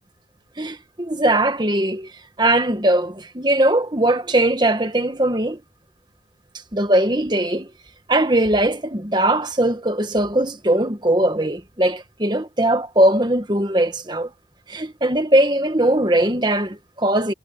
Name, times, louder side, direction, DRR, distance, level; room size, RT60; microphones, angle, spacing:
voice 1, 0.6-2.1 2.4-5.6 6.7-7.7 8.1-14.3 14.7-17.3, right 1 dB, 25° right, 1.6 m, -20 dB
head